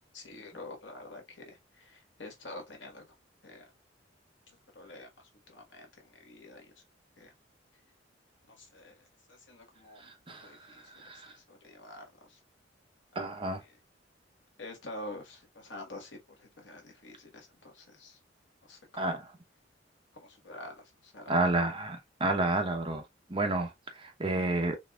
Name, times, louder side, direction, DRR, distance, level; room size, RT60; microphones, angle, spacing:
voice 1, 0.1-3.1 3.4-3.6 4.5-6.7 7.2-7.3 8.5-10.1 10.4-12.4 14.6-18.2 18.6-19.1 20.1-21.6, left 1 dB, 75° left, 1.6 m, -48 dB
voice 2, 10.0-11.3 13.1-13.6 19.0-19.3 21.3-23.0 23.3-24.8, right 2 dB, 30° right, 0.9 m, -31 dB
4.0 x 3.5 x 2.3 m
head